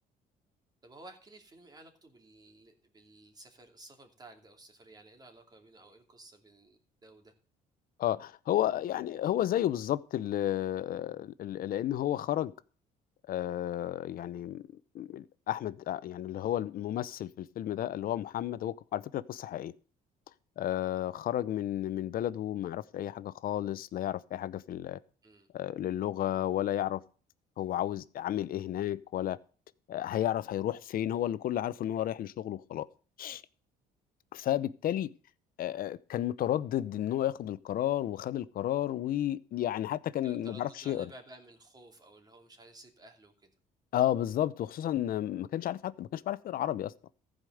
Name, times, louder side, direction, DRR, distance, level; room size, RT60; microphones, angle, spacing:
voice 1, 0.8-7.3 25.2-25.5 40.2-43.5, right 2 dB, 25° right, 2.7 m, -54 dB
voice 2, 8.0-12.5 13.3-14.6 14.9-19.7 20.6-25.0 25.5-27.0 27.6-29.4 29.9-32.9 33.2-33.4 34.3-35.1 35.6-41.1 43.9-46.9, left 12 dB, 60° left, 0.7 m, -32 dB
14.5 x 5.1 x 7.8 m
cardioid pair, 110°, 17 cm